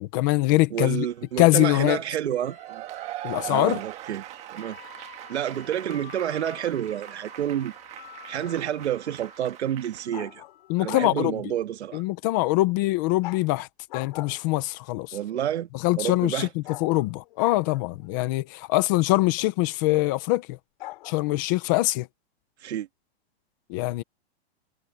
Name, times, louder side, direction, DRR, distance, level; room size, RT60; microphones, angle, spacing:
voice 1, 0.0-1.1 1.4-2.0 3.2-3.8 10.7-11.4 11.9-13.7 13.9-15.2 15.8-20.6 21.0-22.1 23.7-24.0, left 19 dB, 20° left, 0.5 m, -23 dB
voice 2, 0.7-2.8 3.4-4.2 4.5-4.8 5.3-7.7 8.3-10.4 10.8-12.0 15.1-15.7 16.0-16.5 22.6-22.9, right 10 dB, 90° right, 1.8 m, -29 dB
sound 1, 1.1-10.8, left 12 dB, 65° left, 6.7 m, -51 dB
Cheering / Applause / Crowd, 2.4-10.1, right 15 dB, 20° right, 1.5 m, -40 dB
sound 2, 10.1-11.2 13.2-13.5 13.9-14.6 16.6-18.1 20.8-21.1, left 17 dB, 45° left, 3.3 m, -39 dB
supercardioid pair, 170°, 32 cm